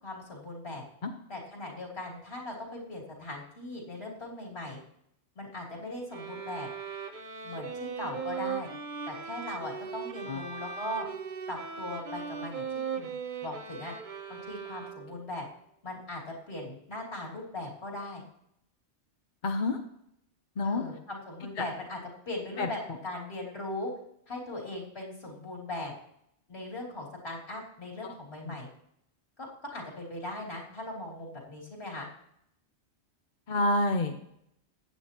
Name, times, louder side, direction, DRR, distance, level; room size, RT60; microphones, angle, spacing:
voice 1, 0.0-0.8 1.3-4.8 5.3-6.7 7.4-8.7 9.1-11.1 11.5-12.6 12.9-13.1 13.4-13.9 14.3-15.5 15.8-18.2 20.6-22.0 22.2-23.9 24.3-25.9 26.5-28.7 29.4-32.1, left 1 dB, 65° left, -2 dB, 3.3 m, -39 dB
sound 1, 6.1-15.3, right 6 dB, 45° right, 0.9 m, -38 dB
voice 2, 19.4-19.8 20.6-20.8 22.6-22.7 28.4-28.6 33.5-34.2, left 2 dB, 50° left, 5 dB, 0.9 m, -28 dB
15.0 x 9.3 x 2.9 m, 0.76 s
omnidirectional pair, 1.1 m